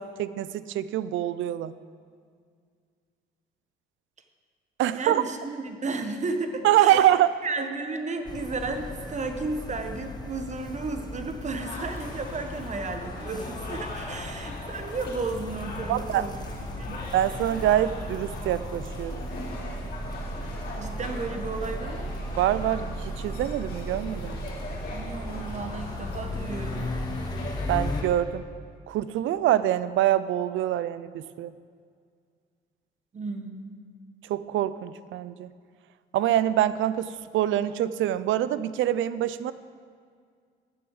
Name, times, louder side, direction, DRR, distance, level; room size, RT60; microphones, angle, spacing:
voice 1, 0.0-1.7 4.8-5.2 6.6-7.4 15.9-16.3 17.1-19.2 22.4-24.5 27.7-28.5 28.9-31.5 34.3-35.5 36.1-39.5, right 12 dB, 75° right, 15 dB, 0.5 m, -25 dB
voice 2, 4.9-7.1 7.4-16.3 16.8-17.0 20.8-22.1 24.9-26.9 33.1-33.7, right 3 dB, 35° right, 6 dB, 1.1 m, -33 dB
sound 1, 8.3-28.0, equal, 20° left, 0.9 m, -36 dB
sound 2, 11.6-28.1, left 3 dB, 50° left, 3.3 m, -41 dB
9.6 x 6.8 x 7.1 m, 2.1 s
cardioid pair, 90°, 20 cm